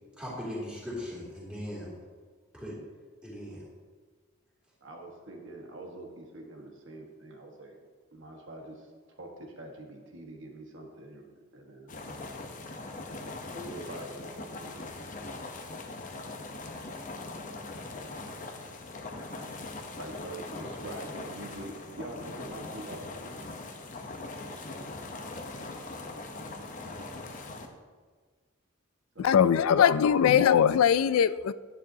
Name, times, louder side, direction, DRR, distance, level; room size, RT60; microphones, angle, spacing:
voice 1, 0.2-2.0 2.5-2.8 3.2-3.6, left 1 dB, 5° right, 2.6 m, -38 dB
voice 2, 4.8-7.8 8.1-8.9 9.1-12.3 13.5-14.8 19.1-19.5 20.0-23.4 29.1-30.8, right 1 dB, 60° right, 1.5 m, -44 dB
sound 1, 11.9-27.7, left 2 dB, 35° left, 0.8 m, -41 dB
voice 3, 29.2-31.5, left 8 dB, 80° left, 0.3 m, -21 dB
11.0 x 9.2 x 2.8 m
head